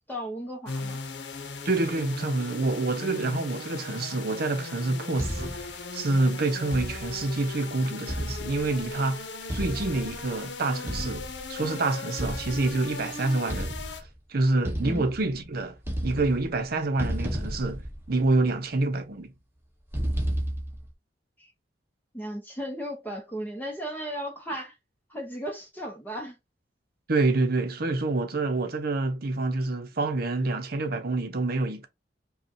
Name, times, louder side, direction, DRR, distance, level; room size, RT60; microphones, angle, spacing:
voice 1, 0.1-1.0 14.8-15.1 21.4-21.5 22.1-24.8 25.1-26.4, equal, 10° left, 1.0 m, -35 dB
sound 1, 0.7-14.0, left 3 dB, 75° left, 0.8 m, -38 dB
voice 2, 1.6-9.2 9.5-13.9 14.3-15.8 16.0-17.8 18.1-19.3 27.1-31.9, right 2 dB, 55° right, 0.8 m, -27 dB
sound 2, 5.2-5.8 6.7-7.3 8.1-8.9 9.5-10.3 10.9-11.5 12.2-13.0 13.5-14.2 14.6-15.5 15.8-16.6 17.0-18.5 19.9-20.9, equal, 15° right, 1.1 m, -33 dB
5.2 x 2.4 x 2.8 m
head